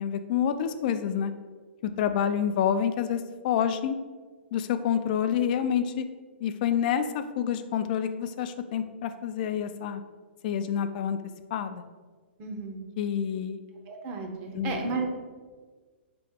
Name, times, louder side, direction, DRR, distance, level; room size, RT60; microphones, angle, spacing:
voice 1, 0.0-1.3 1.8-4.0 4.5-6.1 6.4-10.0 10.4-11.2 11.5-11.8 13.0-13.6 14.5-14.9, left 8 dB, 50° left, 10 dB, 0.3 m, -28 dB
voice 2, 12.4-12.8 13.9-15.1, right 4 dB, 35° right, 3 dB, 0.7 m, -33 dB
4.6 x 2.9 x 3.5 m, 1.4 s
hypercardioid pair, 140°, 6 cm